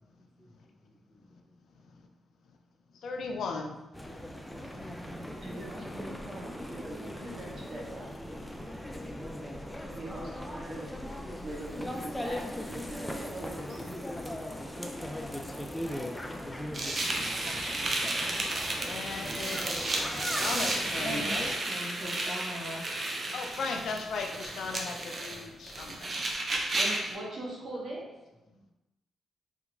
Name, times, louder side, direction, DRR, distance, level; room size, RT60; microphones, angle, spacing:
voice 1, 3.0-3.7 18.8-19.8 20.4-21.5 23.3-26.2, left 4 dB, 70° left, 3 dB, 0.4 m, -36 dB
sound 1, 3.9-21.6, left 1 dB, 10° left, 0.4 m, -39 dB
voice 2, 4.4-4.8 5.4-8.4 9.9-10.9 11.3-14.6 15.2-15.4 20.1-20.3 26.5-28.0, right 1 dB, 60° right, -4 dB, 1.1 m, -43 dB
sound 2, 16.7-27.1, right 2 dB, 45° right, 0.6 m, -33 dB
voice 3, 21.0-22.8, equal, 30° right, -6 dB, 1.3 m, -39 dB
3.4 x 2.8 x 2.5 m, 1.0 s
cardioid pair, 70°, 0 cm